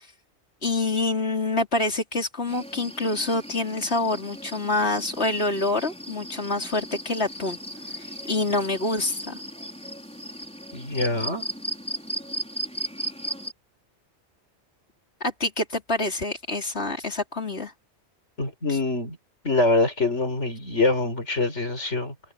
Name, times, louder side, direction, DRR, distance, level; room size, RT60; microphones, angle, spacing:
voice 1, 0.6-7.6 8.0-9.4 15.2-17.7, left 2 dB, 65° left, 4.5 m, -26 dB
sound 1, 2.5-13.5, right 1 dB, 5° left, 4.5 m, -36 dB
voice 2, 10.7-11.5 18.4-19.2 19.4-22.1, left 2 dB, 85° left, 5.1 m, -24 dB
omnidirectional pair, 1.2 m